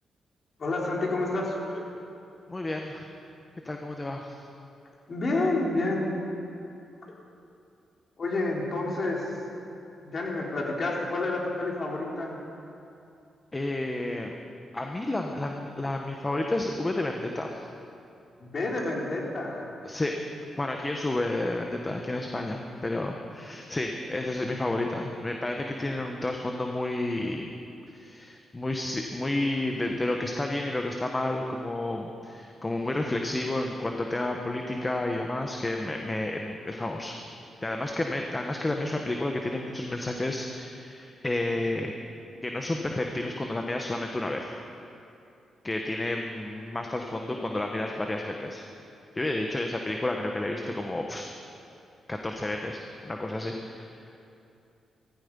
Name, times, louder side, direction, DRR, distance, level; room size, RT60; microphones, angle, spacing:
voice 1, 0.6-1.8 5.1-6.2 8.2-9.3 10.0-12.4 18.4-19.7, left 2 dB, 50° left, -2 dB, 3.9 m, -29 dB
voice 2, 2.5-3.1 3.6-4.4 13.5-14.3 14.7-17.6 19.8-20.1 20.6-27.5 27.9-37.2 37.6-41.9 42.4-44.5 45.6-48.6 49.1-51.3 52.1-53.9, left 2 dB, 25° left, 2 dB, 1.4 m, -31 dB
16.0 x 14.5 x 5.5 m, 2.7 s
cardioid pair, 65°, 0 cm